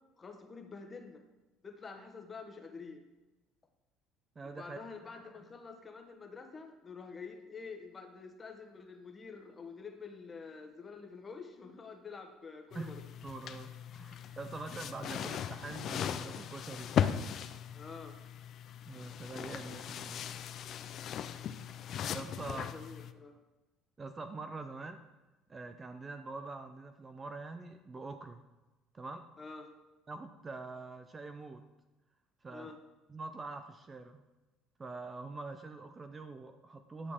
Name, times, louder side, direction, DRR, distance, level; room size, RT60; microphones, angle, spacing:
voice 1, 0.2-1.2 1.6-3.0 4.4-13.0 13.9-14.4 17.7-18.2 22.4-23.4 29.4-29.7 32.5-32.8, left 4 dB, 25° left, 5 dB, 1.1 m, -48 dB
voice 2, 4.4-4.8 12.7-12.9 13.2-16.9 18.9-20.2 22.1-22.6 24.0-25.0 25.5-28.4 28.9-29.3 30.1-31.6 32.4-32.7 33.1-34.2 34.8-37.1, right 3 dB, 25° right, 8 dB, 0.5 m, -44 dB
sound 1, 12.7-23.1, left 9 dB, 50° left, 0.4 m, -38 dB
10.0 x 6.3 x 3.6 m, 1.1 s
cardioid pair, 115°, 0 cm